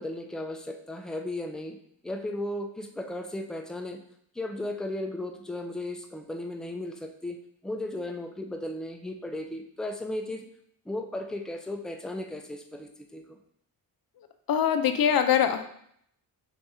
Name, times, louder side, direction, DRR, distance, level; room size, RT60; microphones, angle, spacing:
voice 1, 0.0-1.8 2.0-4.0 4.3-7.4 7.6-10.4 10.9-13.4, left 1 dB, ahead, 3 dB, 0.6 m, -35 dB
voice 2, 14.2-15.7, left 8 dB, 45° left, 8 dB, 0.6 m, -24 dB
4.9 x 3.3 x 2.7 m, 0.68 s
supercardioid pair, 50°, 49 cm